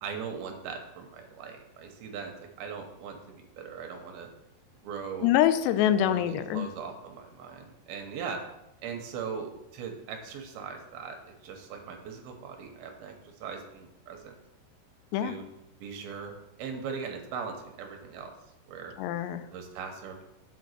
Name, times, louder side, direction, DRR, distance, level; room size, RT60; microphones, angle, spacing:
voice 1, 0.0-4.3 4.8-5.3 5.9-8.4 8.8-14.3 15.2-15.4 15.8-18.3 18.7-18.9 19.5-20.2, right 6 dB, 75° right, 3 dB, 2.6 m, -40 dB
voice 2, 5.2-6.7 15.1-15.4 19.0-19.4, left 11 dB, 85° left, 11 dB, 2.8 m, -25 dB
7.9 x 5.1 x 6.6 m, 0.89 s
omnidirectional pair, 4.8 m